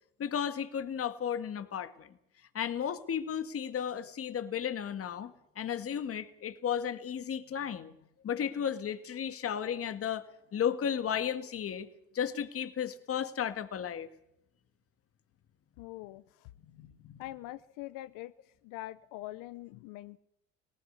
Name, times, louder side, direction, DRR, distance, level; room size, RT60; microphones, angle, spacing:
voice 1, 0.2-2.2 2.5-7.9 8.2-10.3 10.5-11.9 12.1-14.1 16.7-17.2, left 8 dB, 45° left, 10 dB, 1.9 m, -34 dB
voice 2, 15.8-16.5 17.2-18.3 18.6-20.2, left 16 dB, 85° left, 14 dB, 0.7 m, -43 dB
19.0 x 18.5 x 8.2 m, 0.78 s
cardioid pair, 115°, 32 cm